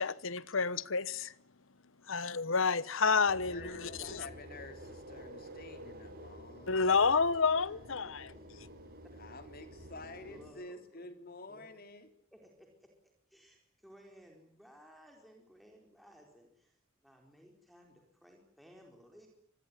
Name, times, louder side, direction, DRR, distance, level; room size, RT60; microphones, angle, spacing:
voice 1, 0.0-1.3 2.0-4.3 6.7-8.3, left 5 dB, 65° left, 1.0 m, -30 dB
sound 1, 3.3-10.5, equal, 45° right, 6.6 m, -50 dB
voice 2, 3.4-7.2 9.2-12.1, left 2 dB, 45° left, 3.2 m, -50 dB
voice 3, 10.3-11.1 11.5-11.8 12.3-12.9 13.3-19.3, equal, ahead, 4.6 m, -59 dB
26.0 x 20.0 x 9.9 m
head